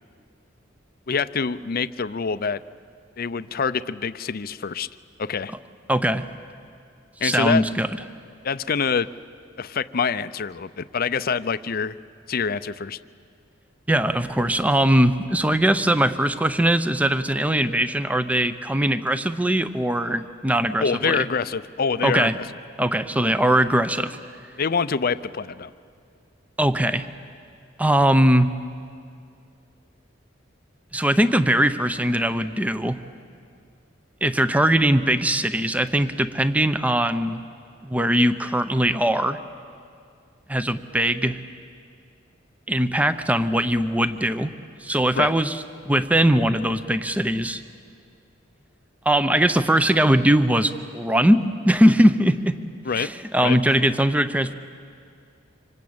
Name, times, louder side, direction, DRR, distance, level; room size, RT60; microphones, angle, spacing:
voice 1, 1.1-2.6 3.2-4.9 5.2-5.5 7.2-7.6 8.4-9.1 9.6-12.0 12.3-13.0 20.8-22.4 24.6-25.7 45.2-45.3 52.8-53.1 53.4-53.6, left 5 dB, 50° left, 14 dB, 0.6 m, -25 dB
voice 2, 5.9-6.2 7.2-7.9 13.9-21.2 22.0-22.3 22.8-24.2 26.6-27.1 27.8-28.5 30.9-33.0 34.2-37.4 37.8-39.4 40.5-41.4 42.7-44.5 44.8-47.6 49.0-52.6 53.0-54.5, right 1 dB, 10° right, 11 dB, 0.7 m, -20 dB
26.0 x 25.5 x 8.7 m, 2.3 s
head